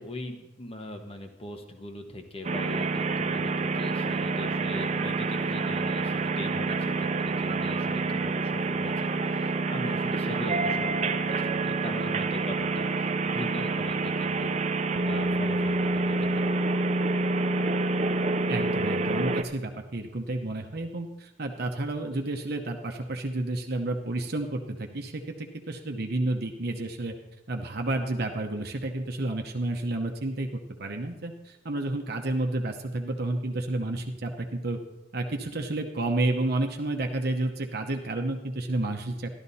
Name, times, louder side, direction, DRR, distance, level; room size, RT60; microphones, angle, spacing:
voice 1, 0.0-14.6 15.0-16.5, left 1 dB, 30° left, 5 dB, 1.3 m, -40 dB
sound 1, 2.4-19.4, right 3 dB, 35° right, 0.6 m, -27 dB
voice 2, 18.5-27.1 27.5-34.8 35.1-39.3, right 2 dB, 55° right, 3 dB, 0.9 m, -30 dB
12.5 x 12.5 x 4.2 m, 1.0 s
head